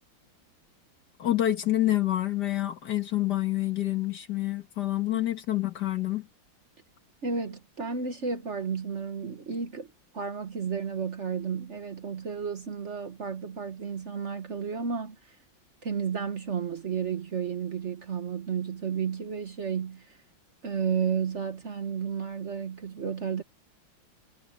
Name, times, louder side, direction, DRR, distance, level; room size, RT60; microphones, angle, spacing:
voice 1, 1.2-6.3, left 14 dB, 60° left, 2.1 m, -27 dB
voice 2, 7.2-9.9 10.1-15.3 15.8-20.2 20.6-23.4, right 6 dB, 45° right, 1.3 m, -32 dB
omnidirectional pair, 2.0 m